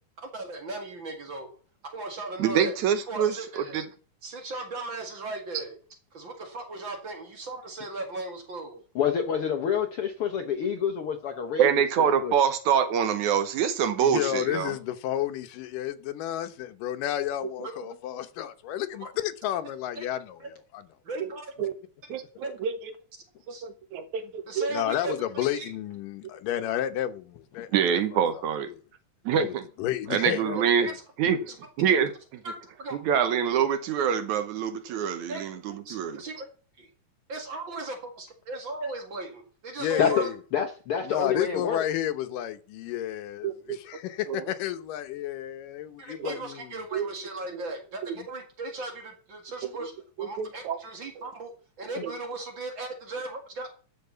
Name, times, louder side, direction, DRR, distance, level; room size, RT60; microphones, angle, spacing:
voice 1, 0.2-1.5 1.8-2.8 3.1-3.8 4.2-5.8 6.1-8.8 17.6-17.7 19.0-19.1 20.0-20.1 20.4-20.5 21.0-21.5 22.4-22.5 23.5-23.6 24.5-25.6 30.8-30.9 32.4-33.0 35.3-35.4 35.9-36.5 36.8-36.9 37.3-40.3 46.0-49.9 50.2-53.7, right 2 dB, 40° right, 2.3 m, -37 dB
voice 2, 2.4-3.8 11.6-14.7 21.2-21.3 21.6-21.7 22.1-22.8 23.5-24.7 27.7-28.7 29.3-29.7 30.1-30.9 31.2-31.5 31.8-32.4 32.9-36.2 43.4-43.8 44.3-44.5 46.2-46.4 46.9-47.1 47.5-47.6 48.1-48.2 49.6-49.9 50.2-50.8 52.0-52.1, right 8 dB, 70° right, 2.2 m, -26 dB
voice 3, 8.9-11.7 12.2-12.3 40.0-40.2 40.5-41.8, left 7 dB, 65° left, 1.4 m, -27 dB
voice 4, 14.0-20.9 24.7-28.4 28.7-28.8 29.3-30.9 39.8-40.4 41.0-46.9 48.2-48.3, left 12 dB, 90° left, 2.6 m, -32 dB
12.0 x 5.9 x 6.9 m
omnidirectional pair, 3.7 m